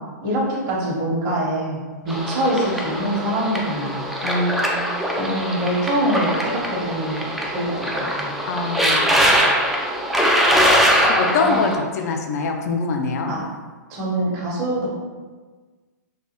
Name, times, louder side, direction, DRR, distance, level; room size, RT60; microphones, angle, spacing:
voice 1, 0.2-4.0 5.2-8.3 11.4-11.6 13.3-13.4 13.9-15.0, right 1 dB, 40° right, -5 dB, 1.0 m, -24 dB
sound 1, 2.1-11.8, equal, ahead, 0.4 m, -22 dB
voice 2, 4.2-4.8 8.5-9.5 11.1-13.3, left 3 dB, 55° left, 4 dB, 0.5 m, -24 dB
3.3 x 2.5 x 2.9 m, 1.4 s
hypercardioid pair, 115°, 10 cm